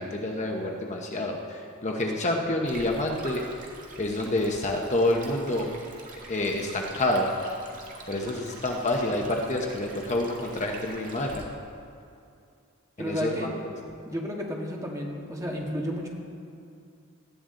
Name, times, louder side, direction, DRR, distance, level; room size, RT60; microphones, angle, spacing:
voice 1, 0.0-3.4 4.0-5.7 6.3-7.3 8.1-11.4 13.0-13.6, left 1 dB, 35° left, 1 dB, 1.0 m, -28 dB
Stream, 2.6-11.4, right 2 dB, 40° right, 2.0 m, -45 dB
voice 2, 13.0-13.5 14.1-16.1, equal, 15° right, -1 dB, 1.7 m, -32 dB
18.0 x 13.0 x 3.9 m, 2.5 s
head